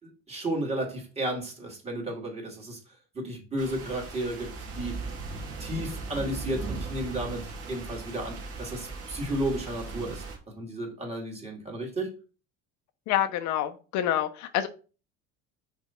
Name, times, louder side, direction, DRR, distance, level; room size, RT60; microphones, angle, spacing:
voice 1, 0.0-2.8 3.1-5.0 5.6-10.2 10.5-12.1, right 1 dB, 20° right, -2 dB, 2.5 m, -33 dB
sound 1, 3.6-10.4, right 3 dB, 50° right, 2.0 m, -38 dB
voice 2, 13.1-14.7, left 11 dB, 65° left, 8 dB, 0.8 m, -27 dB
5.9 x 3.4 x 5.8 m, 0.35 s
cardioid pair, 125°, 31 cm